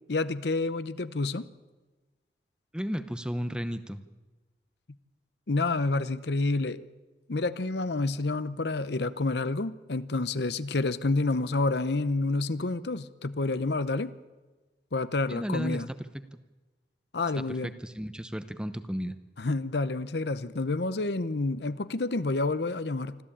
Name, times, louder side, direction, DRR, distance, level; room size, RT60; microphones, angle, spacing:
voice 1, 0.1-1.5 5.5-6.8 7.3-14.1 14.9-15.9 17.1-17.7 19.4-23.2, left 3 dB, 70° left, 14 dB, 0.8 m, -29 dB
voice 2, 2.7-4.0 15.3-16.0 17.4-19.2, equal, 5° right, 11 dB, 0.8 m, -34 dB
25.5 x 14.0 x 8.8 m, 1.2 s
head